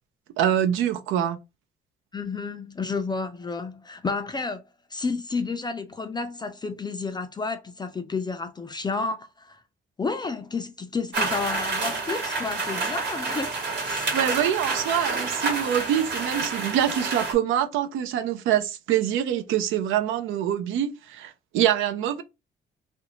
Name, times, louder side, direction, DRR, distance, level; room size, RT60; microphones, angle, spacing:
voice 1, 0.4-1.4 14.1-22.2, right 10 dB, 90° right, 0.4 m, -25 dB
voice 2, 2.1-4.6 4.9-9.6 10.0-14.1, left 4 dB, 20° left, 0.3 m, -31 dB
sound 1, 11.1-17.3, right 3 dB, 60° right, 1.2 m, -29 dB
2.5 x 2.1 x 2.9 m
cardioid pair, 90°, 20 cm